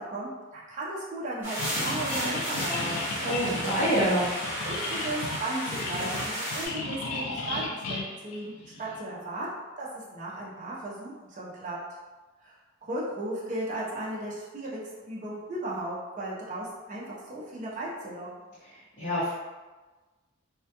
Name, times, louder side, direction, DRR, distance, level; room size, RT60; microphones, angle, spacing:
voice 1, 0.0-3.0 4.6-8.5 8.8-11.8 12.4-12.6 12.8-18.3, right 1 dB, 40° right, -5 dB, 0.5 m, -36 dB
sound 1, 1.4-6.7, equal, 10° right, 0.8 m, -33 dB
sound 2, 1.6-9.0, left 2 dB, 75° left, 0.4 m, -35 dB
voice 2, 3.2-4.3 19.0-19.3, right 1 dB, 35° left, -13 dB, 0.6 m, -26 dB
2.2 x 2.1 x 2.7 m, 1.2 s
head